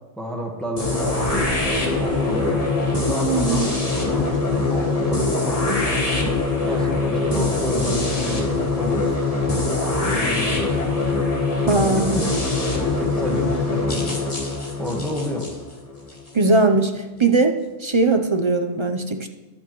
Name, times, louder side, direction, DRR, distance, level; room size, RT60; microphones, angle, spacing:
voice 1, 0.2-2.6 3.1-5.9 6.6-9.1 9.8-11.0 11.8-12.3 12.7-14.2 14.8-15.5, left 1 dB, ahead, 0 dB, 1.3 m, -30 dB
sound 1, 0.8-16.6, left 3 dB, 30° left, 1.5 m, -23 dB
sound 2, 1.1-4.6, equal, 55° right, 2.2 m, -34 dB
voice 2, 3.1-3.7 11.7-12.2 16.3-19.3, right 3 dB, 30° right, 6 dB, 0.5 m, -20 dB
21.0 x 7.2 x 3.1 m, 1.1 s
omnidirectional pair, 1.3 m